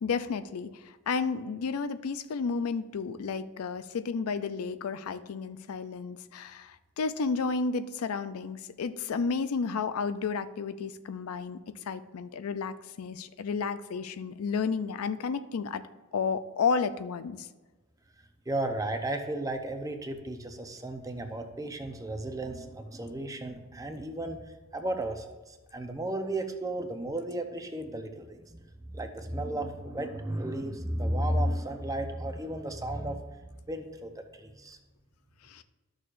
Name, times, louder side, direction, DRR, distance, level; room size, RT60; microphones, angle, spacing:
voice 1, 0.0-11.6 11.9-15.8 16.1-17.5 35.4-35.6, left 5 dB, 85° left, 12 dB, 0.4 m, -32 dB
voice 2, 18.5-24.4 24.7-28.6 28.9-34.8, right 1 dB, 15° right, 6 dB, 0.6 m, -34 dB
12.5 x 6.4 x 2.5 m, 1.2 s
head